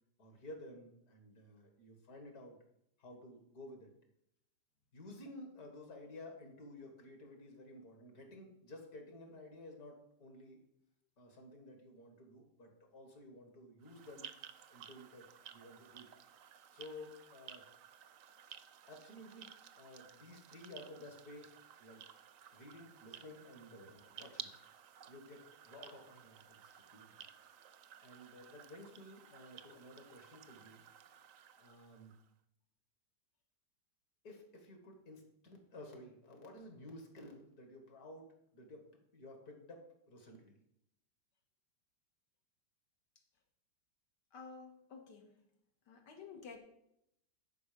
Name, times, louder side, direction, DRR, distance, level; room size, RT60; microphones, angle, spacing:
voice 1, 0.2-2.6 3.0-3.9 4.9-10.6 11.2-14.3 14.7-15.3 15.5-16.1 16.7-17.7 18.9-21.5 21.8-22.0 22.5-24.5 25.1-27.3 28.0-30.8 31.6-32.1 34.2-38.9 39.1-40.6, left 1 dB, 60° left, 3 dB, 2.2 m, -53 dB
sound 1, 13.8-32.3, right 9 dB, 65° right, 0.8 m, -55 dB
voice 2, 44.3-45.3 45.9-46.6, left 5 dB, 80° left, 3 dB, 2.0 m, -52 dB
10.5 x 4.9 x 5.1 m, 0.76 s
omnidirectional pair, 1.8 m